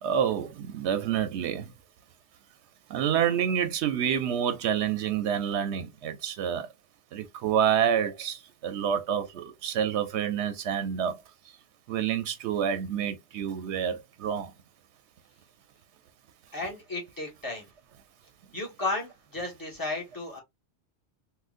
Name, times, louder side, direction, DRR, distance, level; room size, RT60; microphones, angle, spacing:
voice 1, 0.0-1.7 2.9-6.7 7.1-11.2 11.9-14.5, right 8 dB, 90° right, 0.9 m, -28 dB
voice 2, 16.5-17.7 18.5-20.4, left 2 dB, 20° left, 1.4 m, -34 dB
3.7 x 2.2 x 2.4 m
omnidirectional pair, 1.1 m